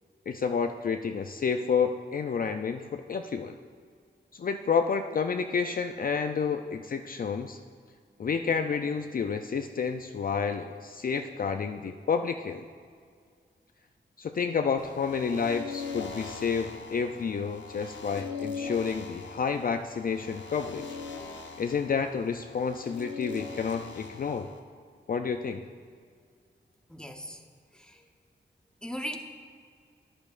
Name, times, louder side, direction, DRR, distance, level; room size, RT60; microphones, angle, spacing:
voice 1, 0.3-3.5 4.3-7.6 8.2-12.6 14.2-20.9 21.6-24.5 25.1-25.6, left 6 dB, 50° left, 6 dB, 0.4 m, -30 dB
sound 1, 14.8-24.6, left 5 dB, 80° left, 0.8 m, -41 dB
voice 2, 26.9-27.4 27.7-28.1 28.8-29.2, equal, 5° left, 3 dB, 0.9 m, -38 dB
12.0 x 10.5 x 2.5 m, 2.1 s
wide cardioid pair, 70°, 19 cm